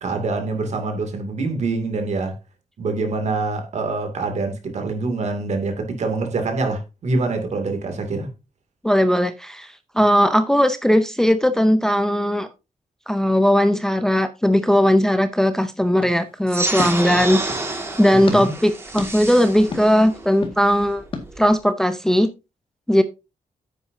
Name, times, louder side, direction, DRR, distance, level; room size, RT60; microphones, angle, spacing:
voice 1, 0.0-2.4 2.8-8.3 18.1-18.5, right 3 dB, 55° right, 2.5 m, -25 dB
voice 2, 8.8-12.5 13.1-17.4 18.0-21.0 21.4-22.3 22.9-23.0, equal, 5° left, 0.6 m, -18 dB
sound 1, 16.0-17.7 18.3-18.4 19.0-19.1 19.7-19.8 20.4-20.6 21.1-21.3, left 4 dB, 40° left, 1.8 m, -32 dB
sound 2, 16.5-21.5, right 2 dB, 15° right, 2.0 m, -29 dB
9.9 x 8.1 x 2.7 m
wide cardioid pair, 160°, 14 cm